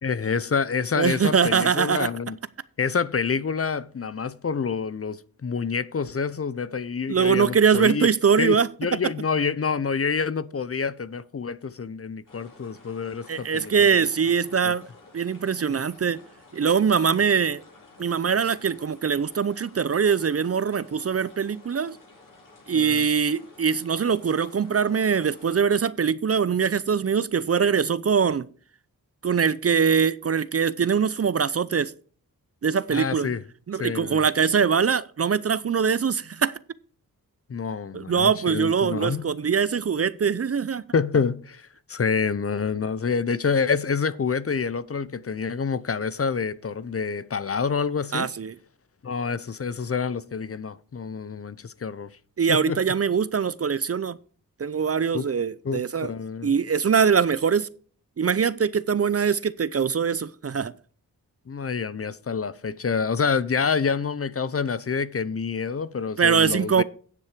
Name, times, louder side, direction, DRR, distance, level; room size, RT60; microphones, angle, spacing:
voice 1, 0.0-2.4 2.8-8.1 8.4-14.1 14.6-14.7 22.7-23.0 32.9-33.4 33.8-34.2 37.5-39.2 40.9-48.3 49.0-52.1 52.5-52.8 55.1-55.3 55.6-56.5 61.5-66.8, left 5 dB, 40° left, 0.7 m, -27 dB
voice 2, 0.9-2.1 7.1-8.7 13.3-14.9 15.1-16.2 16.5-17.6 18.0-22.0 22.7-28.5 29.2-31.9 32.6-33.3 33.7-36.5 37.9-40.8 48.1-48.5 52.4-54.2 54.6-56.1 56.4-57.7 58.2-60.7 66.2-66.8, right 6 dB, 40° right, 0.5 m, -22 dB
sound 1, 12.3-25.7, left 2 dB, 60° left, 4.7 m, -52 dB
9.8 x 7.3 x 5.0 m
cardioid pair, 65°, 36 cm